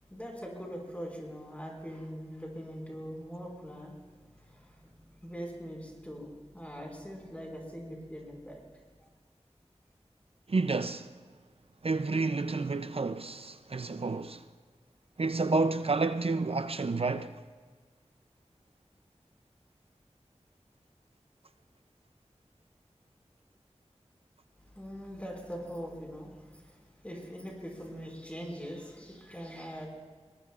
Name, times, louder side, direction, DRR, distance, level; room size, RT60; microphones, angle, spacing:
voice 1, 0.1-8.6 24.6-29.9, equal, 10° left, 5.2 m, -42 dB
voice 2, 10.5-11.1 11.8-14.4 15.2-17.4, right 3 dB, 60° right, 0.5 m, -30 dB
22.0 x 20.5 x 2.4 m
wide cardioid pair, 45°, 11 cm